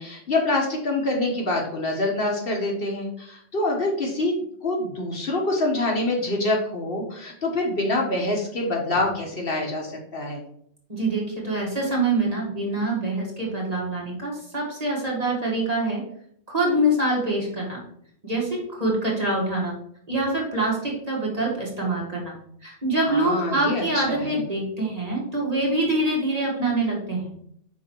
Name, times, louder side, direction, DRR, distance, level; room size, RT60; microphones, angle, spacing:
voice 1, 0.0-4.3 4.6-10.4 23.1-24.4, left 2 dB, 55° left, 0 dB, 1.3 m, -26 dB
voice 2, 10.9-16.0 16.5-17.8 18.2-19.7 20.1-22.3 22.6-27.3, right 2 dB, 35° right, -4 dB, 1.7 m, -25 dB
5.4 x 3.9 x 4.5 m, 0.68 s
omnidirectional pair, 1.2 m